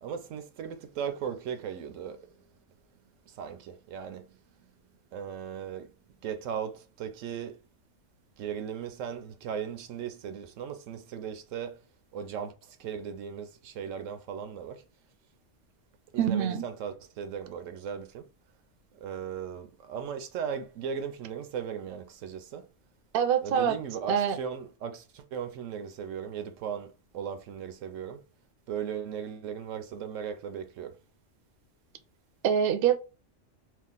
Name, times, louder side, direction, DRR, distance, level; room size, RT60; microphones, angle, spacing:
voice 1, 0.0-2.3 3.3-4.4 5.1-5.9 6.2-7.6 8.4-11.8 12.1-14.8 16.1-18.3 18.9-22.7 23.4-28.2 28.7-31.0, right 7 dB, 85° right, 1.0 m, -37 dB
voice 2, 16.2-16.6 23.1-23.8 24.1-24.4 32.4-33.0, right 8 dB, 60° right, 0.6 m, -24 dB
2.8 x 2.4 x 3.7 m
omnidirectional pair, 1.3 m